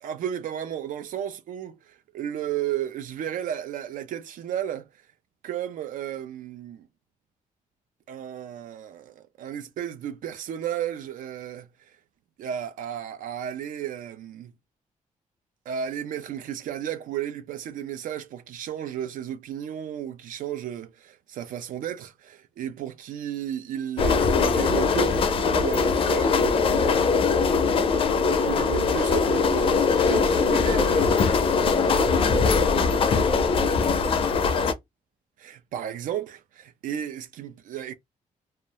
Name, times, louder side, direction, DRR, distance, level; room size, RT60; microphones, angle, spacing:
voice 1, 0.0-4.9 5.4-6.9 8.1-11.7 12.4-14.5 15.7-26.9 28.2-31.1 35.4-37.9, right 10 dB, 75° right, 0.4 m, -33 dB
sound 1, 24.0-34.7, left 5 dB, 40° left, 0.4 m, -21 dB
voice 2, 30.0-31.0 31.6-34.3, right 2 dB, 15° right, 0.5 m, -34 dB
2.3 x 2.1 x 2.7 m
wide cardioid pair, 155°, 14 cm